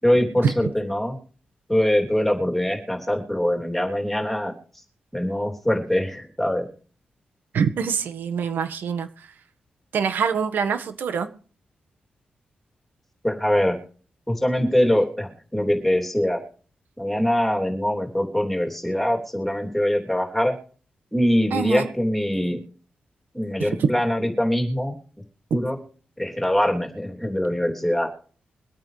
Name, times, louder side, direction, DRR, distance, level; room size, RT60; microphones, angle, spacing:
voice 1, 0.0-1.2 1.7-4.5 5.1-6.7 13.2-13.8 14.3-16.4 17.0-20.6 21.1-22.6 23.3-24.9 25.5-25.8 26.2-28.1, equal, 5° left, 2 dB, 3.3 m, -23 dB
voice 2, 7.5-9.1 9.9-11.3 21.5-21.9 23.6-23.9, right 6 dB, 85° right, 9 dB, 1.6 m, -24 dB
23.5 x 9.1 x 3.4 m, 0.40 s
wide cardioid pair, 140°, 3 cm